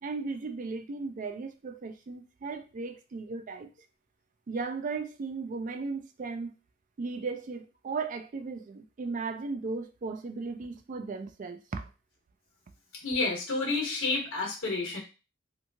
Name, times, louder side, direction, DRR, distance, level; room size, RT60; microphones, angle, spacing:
voice 1, 0.0-3.7 4.5-6.5 7.0-11.9, right 4 dB, 40° right, 0.3 m, -36 dB
voice 2, 13.0-15.0, left 3 dB, 75° left, 1.1 m, -30 dB
2.9 x 2.3 x 2.7 m
head